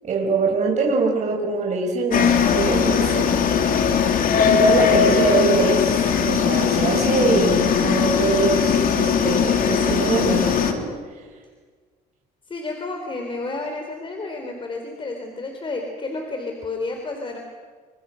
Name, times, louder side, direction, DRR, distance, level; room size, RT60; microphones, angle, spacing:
voice 1, 0.0-3.3 4.4-10.9, right 4 dB, 45° right, 0 dB, 6.3 m, -23 dB
sound 1, 2.1-10.7, left 7 dB, 55° left, 3.2 m, -19 dB
voice 2, 5.0-5.5 12.5-17.4, left 3 dB, 30° left, 3 dB, 3.9 m, -31 dB
30.0 x 26.0 x 6.5 m, 1.5 s
cardioid pair, 110°, 17 cm